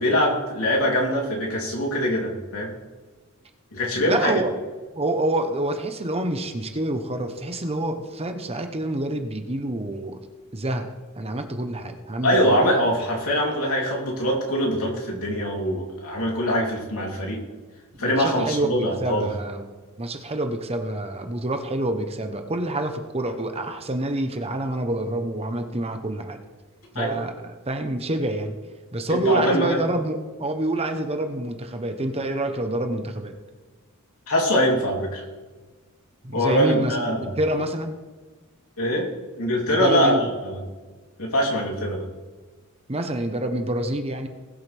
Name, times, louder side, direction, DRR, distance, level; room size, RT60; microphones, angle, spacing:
voice 1, 0.0-2.7 3.7-4.4 12.2-17.4 18.0-19.3 27.0-27.2 29.1-29.8 34.3-35.2 36.3-37.3 38.8-39.1 39.4-40.1 40.4-40.6 41.2-42.1, equal, 85° left, -2 dB, 3.4 m, -23 dB
voice 2, 3.9-4.5 4.9-10.2 10.5-10.9 11.2-12.6 18.0-19.7 20.0-26.4 26.9-28.5 28.9-33.3 36.2-38.0 39.7-40.3 42.9-44.3, right 1 dB, 30° right, 6 dB, 1.1 m, -27 dB
20.0 x 7.9 x 3.6 m, 1.3 s
head